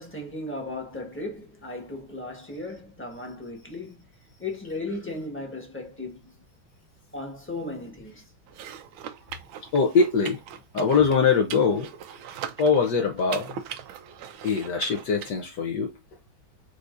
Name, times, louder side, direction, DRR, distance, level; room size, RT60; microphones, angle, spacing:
voice 1, 0.0-4.0 4.4-6.3 7.1-8.2, left 2 dB, 5° left, 1.1 m, -36 dB
sound 1, 8.5-15.3, right 9 dB, 90° right, 1.5 m, -40 dB
voice 2, 9.7-10.4 10.7-11.9 12.6-13.5 14.4-15.9, left 5 dB, 65° left, 1.3 m, -22 dB
4.8 x 4.1 x 2.5 m
omnidirectional pair, 2.2 m